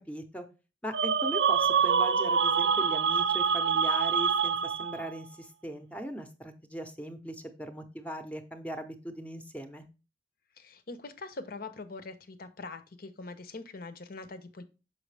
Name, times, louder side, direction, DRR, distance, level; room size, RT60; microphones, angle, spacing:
voice 1, 0.1-0.5 0.8-9.8, right 1 dB, 10° left, 7 dB, 0.7 m, -39 dB
sound 1, 0.9-5.1, right 6 dB, 70° right, 0.4 m, -26 dB
voice 2, 10.6-14.6, left 3 dB, 55° left, 11 dB, 0.7 m, -43 dB
6.4 x 5.6 x 3.3 m, 0.31 s
head